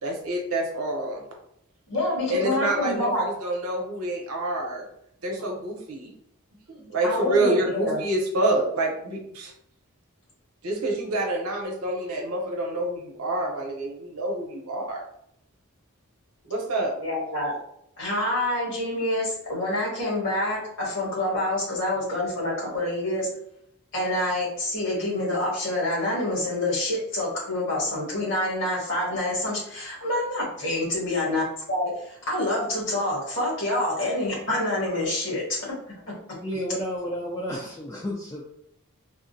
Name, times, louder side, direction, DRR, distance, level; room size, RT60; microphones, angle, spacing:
voice 1, 0.0-1.2 2.3-4.8 5.2-6.1 6.7-9.5 10.6-15.0 16.5-16.9, right 2 dB, 75° right, 0 dB, 0.8 m, -27 dB
voice 2, 1.9-3.3 7.0-8.0 17.0-17.6 18.0-23.3 23.9-35.6, left 1 dB, 55° left, -5 dB, 1.4 m, -27 dB
voice 3, 36.4-38.4, equal, 15° left, -3 dB, 0.3 m, -31 dB
3.5 x 2.1 x 2.6 m, 0.73 s
head